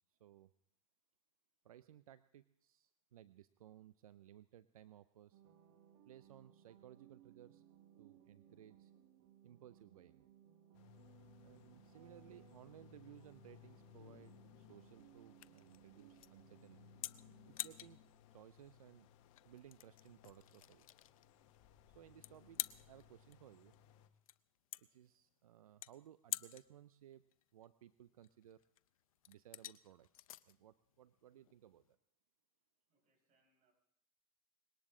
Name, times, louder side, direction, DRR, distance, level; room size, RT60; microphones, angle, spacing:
voice 1, 0.1-0.5 1.6-5.4 6.1-7.6 8.0-8.9 9.4-10.3 11.4-16.9 17.5-18.0 18.3-19.1 19.4-20.9 21.9-23.8 24.8-27.2 27.5-28.6 29.3-31.9, right 11 dB, 90° right, 15 dB, 0.5 m, -60 dB
sound 1, 5.3-17.6, right 10 dB, 60° right, 1.5 m, -64 dB
sound 2, 10.7-24.1, left 12 dB, 60° left, 1.3 m, -64 dB
sound 3, 13.1-31.9, left 13 dB, 80° left, 0.6 m, -51 dB
voice 2, 32.9-33.7, right 3 dB, 45° right, 3 dB, 5.5 m, -80 dB
20.5 x 18.0 x 3.7 m, 0.71 s
hypercardioid pair, 105°, 18 cm